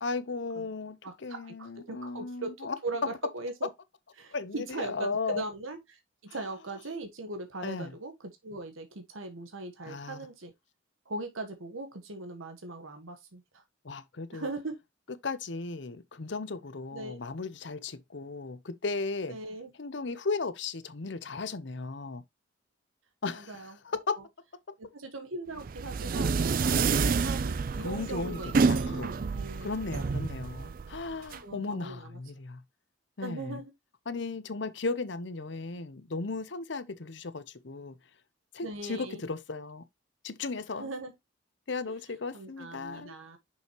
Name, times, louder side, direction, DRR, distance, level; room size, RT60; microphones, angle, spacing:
voice 1, 0.0-2.8 4.3-5.4 7.6-7.9 9.8-10.2 13.8-14.5 15.2-19.4 19.8-22.2 23.2-24.1 27.8-28.4 28.7-29.1 29.6-32.6 33.2-33.6 34.1-37.9 38.5-39.8 40.2-40.9 41.7-43.1, left 3 dB, 60° left, 0.7 m, -36 dB
voice 2, 1.0-3.7 4.2-10.5 11.1-13.6 14.3-14.7 16.9-17.2 19.3-19.7 23.3-23.7 24.2-24.3 24.8-30.1 31.4-32.2 33.2-33.7 38.6-39.2 40.8-41.1 41.9-42.0 42.3-43.4, right 2 dB, 85° right, 1.3 m, -40 dB
sound 1, 25.6-31.4, right 4 dB, 45° right, 0.4 m, -29 dB
6.3 x 5.6 x 2.9 m
head